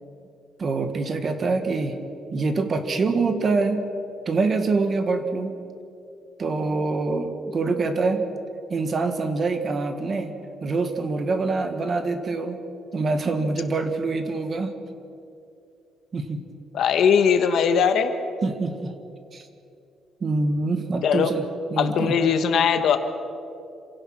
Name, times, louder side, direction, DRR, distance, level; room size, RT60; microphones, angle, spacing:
voice 1, 0.6-2.0 2.3-3.8 4.2-5.6 6.4-8.2 8.7-10.3 10.6-12.6 12.9-14.7 16.1-16.4 18.4-18.9 19.3-19.5 20.2-21.4 21.7-22.2, right 3 dB, 30° right, 8 dB, 1.5 m, -25 dB
voice 2, 16.7-18.1 21.0-21.3 21.8-23.0, left 7 dB, 55° left, 8 dB, 1.4 m, -20 dB
27.0 x 17.0 x 6.1 m, 2.7 s
cardioid pair, 175°, 0 cm